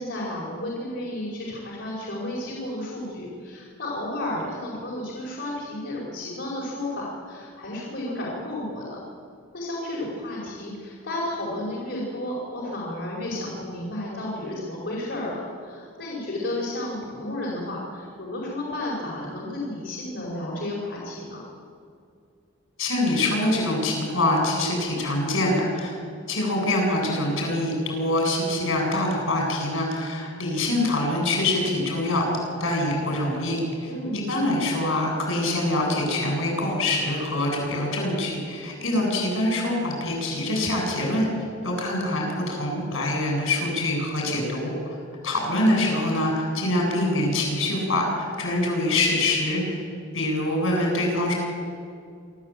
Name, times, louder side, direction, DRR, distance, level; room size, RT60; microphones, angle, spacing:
voice 1, 0.0-9.0 9.5-21.4 33.9-34.2, left 1 dB, 60° left, -5 dB, 5.1 m, -32 dB
voice 2, 22.8-25.9 26.3-41.3 41.6-45.0 45.2-49.6 50.1-51.3, left 1 dB, 80° left, 0 dB, 8.0 m, -24 dB
26.0 x 13.5 x 8.9 m, 2.4 s
head